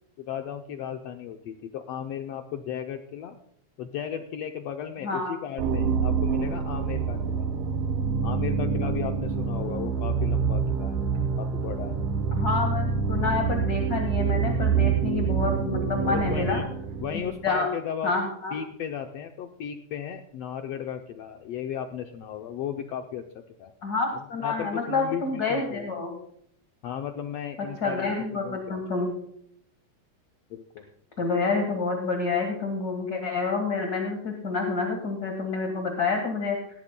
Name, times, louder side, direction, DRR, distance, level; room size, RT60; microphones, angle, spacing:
voice 1, 0.2-3.4 3.8-7.5 8.2-12.0 16.0-16.7 17.0-18.1 18.5-23.2 23.6-23.7 24.1-25.9 26.8-28.1 28.4-28.8 30.5-30.9, left 9 dB, 75° left, 5 dB, 1.5 m, -35 dB
voice 2, 5.0-5.4 12.3-16.6 17.4-17.7 18.0-18.5 23.8-26.2 27.8-29.1 31.2-36.6, left 4 dB, 40° left, 2 dB, 1.6 m, -28 dB
sound 1, 5.6-17.5, right 6 dB, 80° right, 2.5 m, -26 dB
19.0 x 14.5 x 2.2 m, 0.68 s
omnidirectional pair, 3.5 m